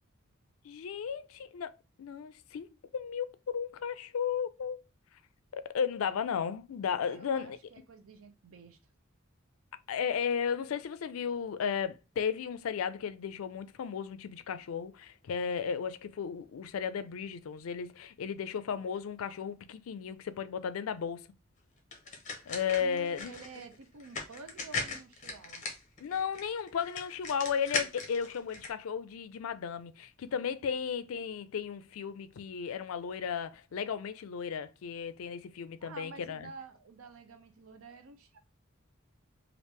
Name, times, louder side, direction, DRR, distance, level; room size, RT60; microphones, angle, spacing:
voice 1, 0.6-1.7 2.0-2.7 2.9-4.8 5.5-7.6 9.9-21.2 22.5-23.3 26.0-36.5, left 7 dB, 80° left, 0.4 m, -34 dB
voice 2, 7.1-8.8 22.8-25.6 30.3-30.4 35.8-38.4, right 3 dB, 90° right, 0.5 m, -50 dB
sound 1, 21.9-28.7, left 4 dB, 35° left, 0.7 m, -39 dB
3.4 x 2.5 x 3.1 m
head